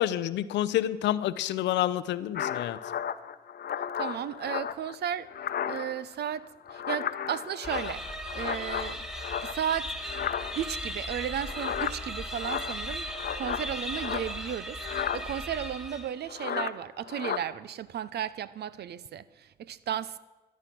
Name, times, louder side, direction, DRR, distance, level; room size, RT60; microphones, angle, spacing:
voice 1, 0.0-2.8, left 12 dB, 90° left, 0.5 m, -28 dB
sound 1, 2.3-5.0 5.3-6.1 6.4-9.7 10.0-10.8 11.4-14.5 14.8-15.2 16.3-16.7 17.1-17.4, left 9 dB, 60° left, 0.8 m, -34 dB
voice 2, 4.0-5.3 5.6-6.5 6.7-8.0 8.3-9.0 9.4-9.9 10.6-13.1 13.4-20.2, right 9 dB, 70° right, 0.6 m, -34 dB
sound 2, 7.6-16.3, equal, 5° right, 1.4 m, -37 dB
13.5 x 10.5 x 6.0 m
cardioid pair, 70°, 18 cm